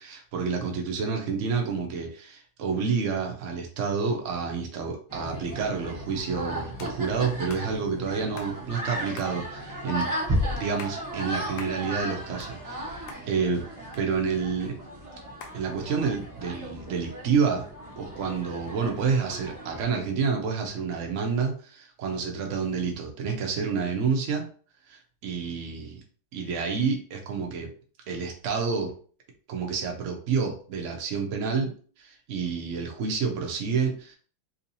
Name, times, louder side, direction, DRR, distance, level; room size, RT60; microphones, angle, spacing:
voice 1, 0.0-10.1 10.5-13.7 14.0-14.8 15.5-17.6 18.0-24.5 24.9-26.0 26.3-27.7 28.1-28.9 29.5-34.1, right 5 dB, 85° right, 1 dB, 0.6 m, -29 dB
sound 1, 5.1-20.0, equal, 30° right, 0.3 m, -35 dB
sound 2, 6.8-7.0 7.5-7.7 8.4-8.5 9.2-9.4 10.0-10.1 10.6-11.0 11.6-11.8 12.2-12.8 13.1-13.2 13.9-14.5 15.4-15.6, left 5 dB, 85° left, 1.5 m, -43 dB
3.7 x 2.8 x 2.6 m, 0.42 s
omnidirectional pair, 2.3 m